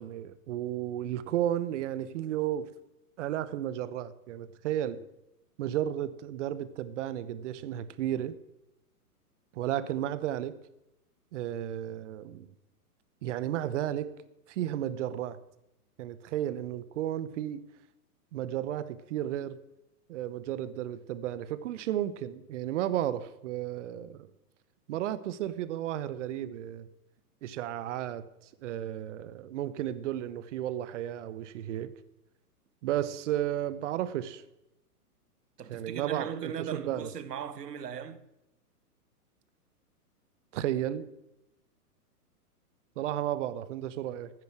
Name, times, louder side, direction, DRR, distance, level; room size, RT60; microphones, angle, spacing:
voice 1, 0.0-2.7 3.2-5.1 5.6-8.4 9.5-10.6 11.3-12.5 13.2-14.1 14.5-15.4 16.0-17.6 18.3-19.6 20.1-24.2 24.9-26.9 27.4-28.2 28.6-31.9 32.8-34.4 35.7-37.1 40.5-41.1 43.0-44.3, right 12 dB, 50° right, 1.0 m, -33 dB
voice 2, 35.6-38.2, right 8 dB, 80° right, 1.4 m, -38 dB
14.0 x 9.4 x 6.1 m
hypercardioid pair, 135°, 47 cm